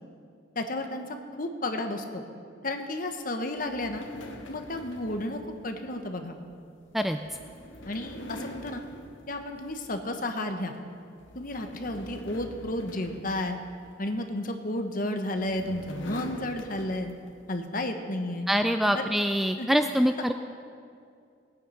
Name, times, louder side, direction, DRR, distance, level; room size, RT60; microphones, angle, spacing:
voice 1, 0.5-2.2 2.6-4.1 4.5-6.3 7.8-8.8 9.3-10.8 11.3-13.6 14.0-17.1 17.5-18.5 18.9-19.1 19.6-19.8, left 1 dB, 45° left, 5 dB, 1.3 m, -32 dB
sound 1, 3.5-10.1 10.5-10.7 11.2-14.2 15.0-17.4, left 1 dB, 85° left, 1.6 m, -45 dB
voice 2, 18.5-20.3, equal, ahead, 7 dB, 0.3 m, -24 dB
20.0 x 9.3 x 5.7 m, 2.4 s
head